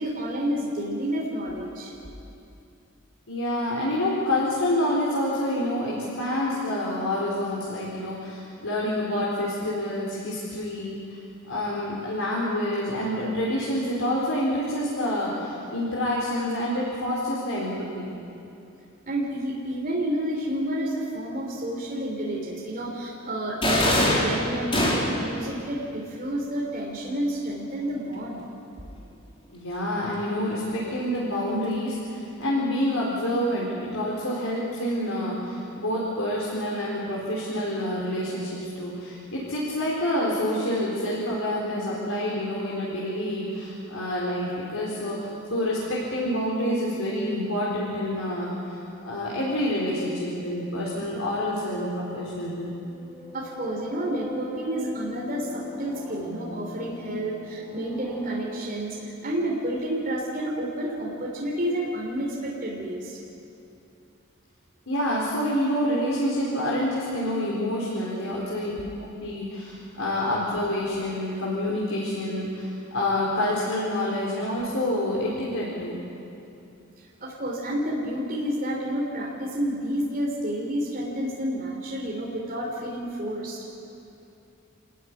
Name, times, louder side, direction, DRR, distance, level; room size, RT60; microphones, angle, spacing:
voice 1, 0.0-1.9 19.1-28.4 53.3-63.2 77.0-83.6, right 1 dB, 40° right, -3 dB, 3.5 m, -30 dB
voice 2, 3.3-11.0 11.5-18.1 29.5-52.7 64.9-68.7 69.1-76.0, left 1 dB, 90° left, -6 dB, 4.6 m, -27 dB
sound 1, 23.6-25.4, left 1 dB, 25° left, 3.6 m, -23 dB
sound 2, 52.8-60.6, left 1 dB, 10° right, 6.8 m, -40 dB
27.5 x 15.0 x 9.9 m, 2.7 s
head